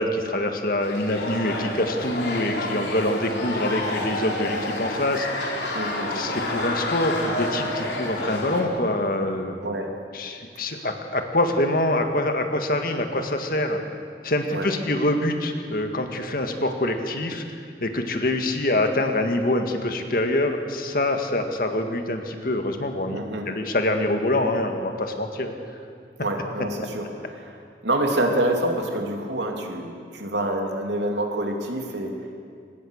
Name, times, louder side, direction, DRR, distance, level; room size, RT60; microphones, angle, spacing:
voice 1, 0.0-5.7 6.1-9.6 10.1-13.8 14.2-17.4 17.8-25.5, left 1 dB, 55° left, 5 dB, 1.9 m, -25 dB
sound 1, 0.8-8.6, left 1 dB, 80° left, 3.7 m, -29 dB
voice 2, 5.7-6.1 9.6-9.9 14.5-14.7 23.1-23.4 26.2-27.5 27.8-32.1, right 1 dB, 90° right, 2 dB, 3.1 m, -27 dB
24.0 x 20.5 x 6.6 m, 2.2 s
head